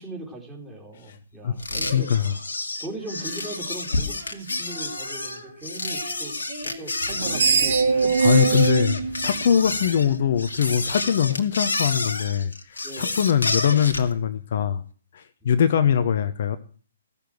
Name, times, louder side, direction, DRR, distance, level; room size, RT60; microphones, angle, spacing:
voice 1, 0.0-2.1 2.8-8.2 8.4-8.8 11.0-11.2 12.8-13.1 15.4-15.5, right 2 dB, 10° right, -3 dB, 3.4 m, -39 dB
sound 1, 1.6-14.1, left 3 dB, 75° left, 1.8 m, -30 dB
voice 2, 1.9-2.3 8.2-9.0 9.2-14.8 15.1-16.6, left 8 dB, 50° left, 9 dB, 0.8 m, -22 dB
Female singing, 3.0-10.4, right 1 dB, 80° right, 5.7 m, -43 dB
Screech, 7.0-10.3, right 4 dB, 55° right, 1.8 m, -22 dB
15.5 x 7.0 x 6.0 m, 0.41 s
figure-of-eight pair, 125°, 0 cm